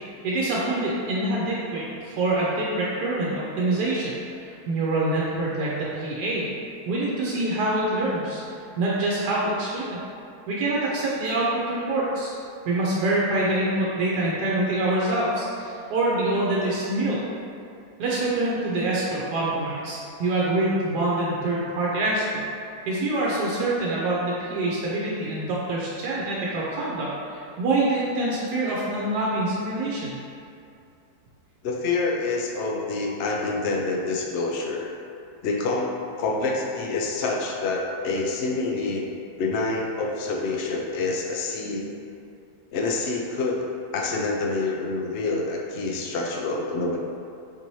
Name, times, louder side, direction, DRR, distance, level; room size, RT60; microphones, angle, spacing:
voice 1, 0.2-6.5 6.9-8.4 8.8-10.0 10.5-12.3 12.7-17.2 18.0-22.4 22.9-30.1, right 2 dB, 85° right, -6 dB, 1.2 m, -25 dB
voice 2, 31.6-34.9 35.4-35.9 36.2-39.0 39.4-41.9 42.7-43.6 43.9-47.0, left 3 dB, 85° left, -1 dB, 0.5 m, -27 dB
4.5 x 2.7 x 3.0 m, 2.5 s
omnidirectional pair, 1.7 m